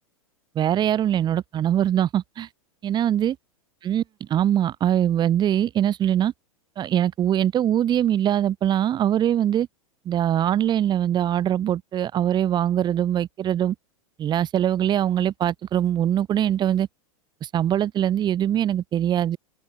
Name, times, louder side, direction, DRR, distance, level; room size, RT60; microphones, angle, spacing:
voice 1, 0.5-2.5 2.8-3.3 3.8-6.3 6.8-9.7 10.0-13.7 14.2-16.9 17.4-19.4, right 10 dB, 25° right, 1.0 m, -22 dB
open air
figure-of-eight pair, 95°, 18 cm